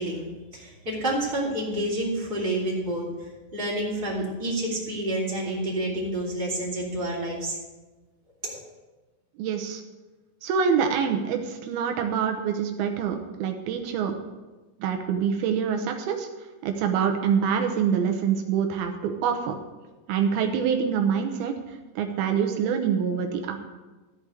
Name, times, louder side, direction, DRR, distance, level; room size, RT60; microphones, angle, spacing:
voice 1, 0.0-3.1 3.5-7.6 8.4-8.6, right 1 dB, 15° right, -5 dB, 2.8 m, -29 dB
voice 2, 9.4-9.8 10.4-14.1 14.8-16.3 16.6-19.6 20.1-23.6, right 7 dB, 80° right, 5 dB, 2.7 m, -25 dB
14.5 x 4.9 x 8.0 m, 1.2 s
omnidirectional pair, 4.4 m